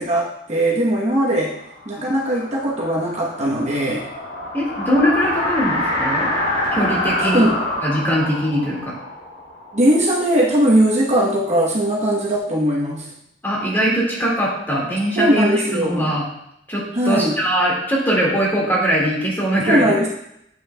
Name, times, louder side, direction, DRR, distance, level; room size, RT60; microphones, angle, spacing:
voice 1, 0.0-1.6 1.9-4.0 7.2-7.7 9.7-13.1 15.2-16.1 16.9-17.3 19.6-20.1, right 1 dB, 40° right, -3 dB, 1.0 m, -19 dB
sound 1, 1.7-10.4, left 1 dB, 65° left, 2.7 m, -26 dB
voice 2, 4.5-6.3 6.8-7.5 7.8-8.9 13.4-16.3 16.7-19.9, equal, 10° left, -4 dB, 2.0 m, -21 dB
8.9 x 6.3 x 2.2 m, 0.78 s
head